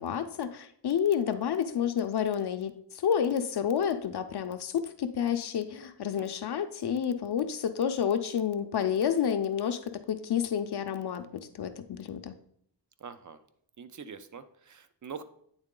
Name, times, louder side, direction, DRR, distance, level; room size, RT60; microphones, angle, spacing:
voice 1, 0.0-12.3, left 8 dB, 65° left, 8 dB, 0.5 m, -30 dB
voice 2, 13.0-13.4 13.8-15.2, right 6 dB, 45° right, 12 dB, 0.5 m, -44 dB
8.8 x 3.7 x 3.7 m, 0.69 s
wide cardioid pair, 125°, 43 cm